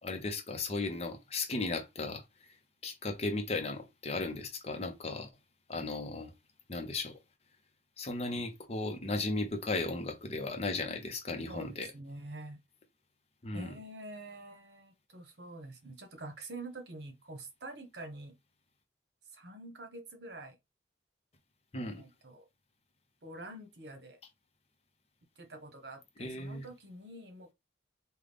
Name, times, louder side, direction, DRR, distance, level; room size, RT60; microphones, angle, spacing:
voice 1, 0.0-2.2 2.8-5.3 5.7-6.3 6.7-7.2 8.0-11.9 13.4-13.7 21.7-22.0 26.2-26.7, left 3 dB, 35° left, 0.7 m, -36 dB
voice 2, 11.5-12.6 13.5-18.3 19.2-20.6 21.8-22.5 23.2-24.2 25.4-27.5, right 2 dB, 65° right, 1.0 m, -46 dB
3.7 x 2.3 x 3.5 m
head